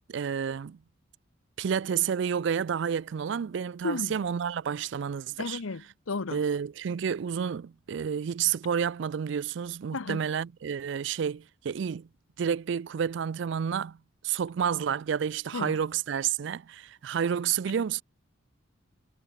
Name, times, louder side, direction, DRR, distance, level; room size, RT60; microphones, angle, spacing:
voice 1, 0.1-0.8 1.6-5.6 6.3-12.1 12.4-14.0 14.2-18.0, right 7 dB, 60° right, 0.3 m, -30 dB
voice 2, 3.8-4.1 5.4-6.4 9.9-10.3 15.5-15.8, left 3 dB, 85° left, 0.8 m, -33 dB
head